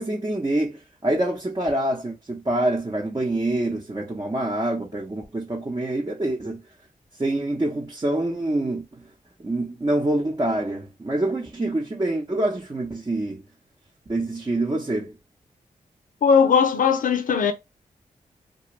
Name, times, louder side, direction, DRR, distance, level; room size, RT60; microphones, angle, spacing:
voice 1, 0.0-6.6 7.2-8.8 9.4-13.4 14.1-15.1, right 1 dB, 25° right, 0.8 m, -26 dB
voice 2, 16.2-17.5, left 6 dB, 70° left, 0.6 m, -18 dB
2.4 x 2.2 x 3.0 m
cardioid pair, 45°, 15 cm